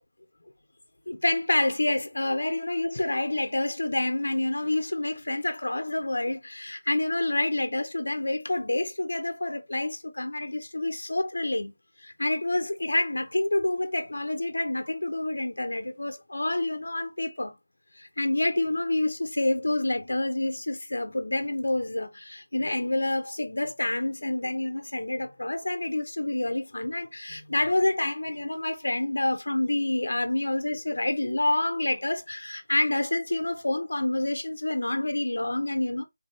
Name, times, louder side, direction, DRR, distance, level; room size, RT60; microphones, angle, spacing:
voice 1, 1.1-11.7 12.0-17.6 18.0-36.0, left 1 dB, 85° left, 0.8 m, -28 dB
3.6 x 3.4 x 2.8 m
figure-of-eight pair, 180°, 0 cm